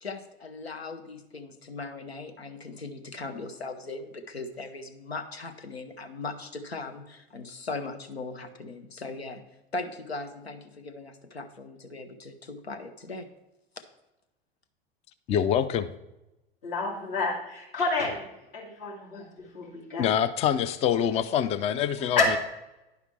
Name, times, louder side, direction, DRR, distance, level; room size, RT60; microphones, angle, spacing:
voice 1, 0.0-9.4 9.7-13.3, left 3 dB, 90° left, 8 dB, 0.8 m, -39 dB
voice 2, 15.3-15.9 20.0-22.4, left 9 dB, 20° left, 13 dB, 0.3 m, -25 dB
voice 3, 16.6-18.2 18.5-19.2 19.5-20.1 22.2-22.4, left 3 dB, 60° left, -4 dB, 2.6 m, -28 dB
10.5 x 4.9 x 3.2 m, 0.94 s
figure-of-eight pair, 85°, 31 cm